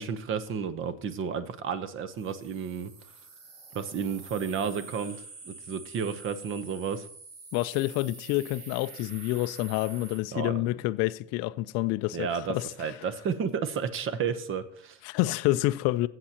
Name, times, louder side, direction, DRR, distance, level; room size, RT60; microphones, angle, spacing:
voice 1, 0.0-2.9 3.7-7.1 10.3-10.6 12.1-15.0, right 6 dB, 35° right, 0.9 m, -32 dB
sound 1, 2.2-10.2, right 3 dB, 70° right, 3.5 m, -47 dB
voice 2, 7.5-12.9 15.0-16.1, left 17 dB, 45° left, 0.4 m, -28 dB
16.0 x 7.5 x 2.9 m
supercardioid pair, 135°, 36 cm